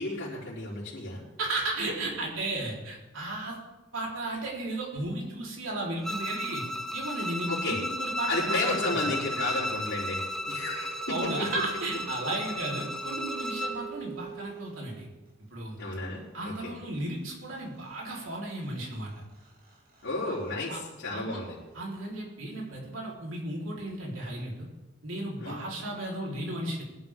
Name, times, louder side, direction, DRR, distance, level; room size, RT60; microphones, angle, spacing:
voice 1, 0.0-1.2 7.5-7.8 8.3-11.5 15.8-16.8 20.0-21.6 25.4-25.7, left 2 dB, 65° left, -8 dB, 3.5 m, -33 dB
voice 2, 1.4-3.6 3.9-6.6 6.9-8.8 11.1-15.1 15.5-15.8 16.3-19.1 20.7-20.8 21.1-21.4 21.7-24.7 25.0-26.8, right 2 dB, 85° right, -3 dB, 3.8 m, -34 dB
Bowed string instrument, 6.0-13.8, left 1 dB, ahead, 1.0 m, -34 dB
sound 1, 10.0-15.3 17.2-17.3 17.5-23.0, right 6 dB, 50° right, 4.7 m, -48 dB
20.5 x 11.5 x 3.6 m, 1.1 s
head